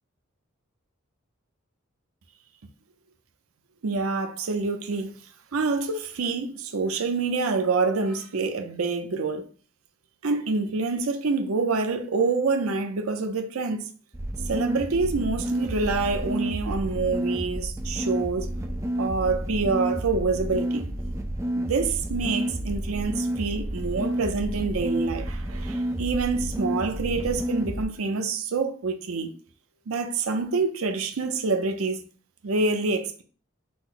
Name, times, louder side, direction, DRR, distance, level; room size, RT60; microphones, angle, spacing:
voice 1, 3.8-5.1 5.5-9.5 10.2-13.9 14.5-18.5 19.0-20.9 21.6-29.3 29.9-32.0 32.4-33.2, right 4 dB, 90° right, 0.6 m, -26 dB
sound 1, 14.1-27.8, right 1 dB, 15° right, 0.4 m, -30 dB
5.9 x 2.0 x 3.9 m
head